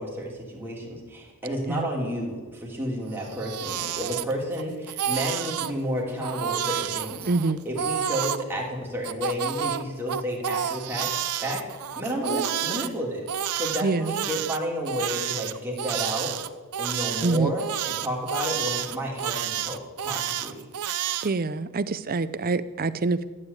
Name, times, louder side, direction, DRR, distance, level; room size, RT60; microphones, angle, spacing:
voice 1, 0.0-7.3 7.6-11.1 11.4-11.6 11.9-13.2 13.5-16.3 16.8-20.6, equal, 10° right, -3 dB, 3.1 m, -31 dB
Crying sobbing, 3.1-4.6 4.9-5.7 6.2-8.4 9.0-12.9 13.3-21.3, right 10 dB, 90° right, 0.6 m, -30 dB
voice 2, 7.3-7.6 13.8-14.1 17.2-17.6 21.2-23.3, right 3 dB, 40° right, 14 dB, 0.6 m, -25 dB
12.5 x 8.2 x 8.4 m, 1.4 s
head